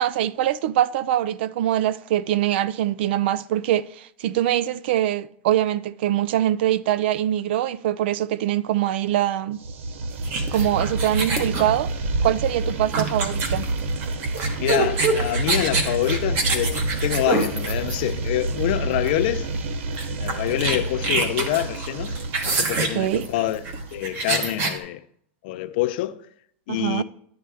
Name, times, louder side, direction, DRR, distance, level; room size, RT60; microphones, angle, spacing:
voice 1, 0.0-9.6 10.5-11.9 12.2-13.7 22.9-23.2 26.7-27.0, right 12 dB, 60° right, 0.3 m, -23 dB
sound 1, 9.6-24.4, right 2 dB, 85° right, 0.8 m, -29 dB
sound 2, 10.2-18.3 19.1-19.3 19.5-19.6 20.0-24.8, right 3 dB, 35° right, 1.1 m, -26 dB
voice 2, 14.6-19.5 20.2-22.2 22.4-23.6 23.9-25.0 25.4-26.2 26.7-27.0, left 14 dB, 50° left, 0.5 m, -26 dB
11.0 x 7.7 x 3.4 m
supercardioid pair, 175°, 7 cm